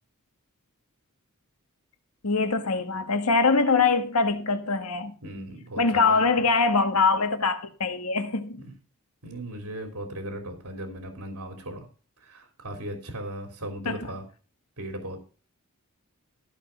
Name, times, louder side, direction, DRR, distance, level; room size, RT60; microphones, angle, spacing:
voice 1, 2.2-5.1 5.8-8.6 13.8-14.1, left 4 dB, 80° left, 1.6 m, -23 dB
voice 2, 5.2-6.3 8.6-8.7 9.2-11.9 12.2-14.2 14.8-15.2, right 1 dB, 75° right, 3.1 m, -37 dB
14.5 x 6.3 x 5.8 m
head